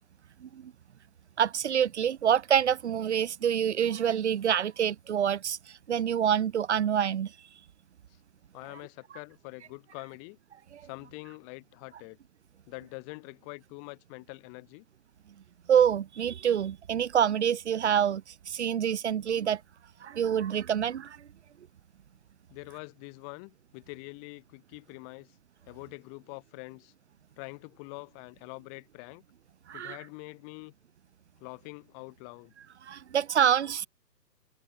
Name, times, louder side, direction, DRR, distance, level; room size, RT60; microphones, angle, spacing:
voice 1, 0.4-0.7 1.4-5.6 5.9-7.3 10.7-10.8 15.7-19.6 20.0-21.2 29.7-30.0 32.8-33.9, right 9 dB, 40° right, 1.3 m, -26 dB
voice 2, 8.5-10.4 10.8-12.2 12.7-14.8 22.5-25.4 25.7-26.9 27.4-29.2 29.7-30.7 31.4-32.5, left 39 dB, 20° left, 3.0 m, -45 dB
figure-of-eight pair, 140°, 49 cm